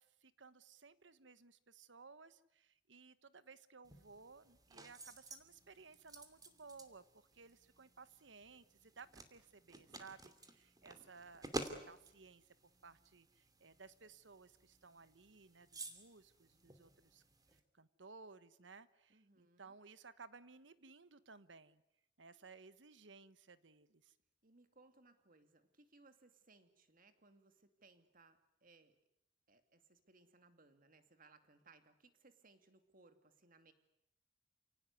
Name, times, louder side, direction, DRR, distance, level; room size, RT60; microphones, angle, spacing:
voice 1, 0.0-12.5 12.8-17.2 17.5-21.8 22.2-24.1, right 4 dB, 70° right, 14 dB, 1.3 m, -59 dB
sound 1, 3.8-17.6, right 2 dB, 20° right, 2.5 m, -52 dB
voice 2, 19.1-19.7 24.4-29.0 29.5-33.7, right 3 dB, 50° right, 8 dB, 2.5 m, -67 dB
29.0 x 18.0 x 9.7 m, 0.84 s
head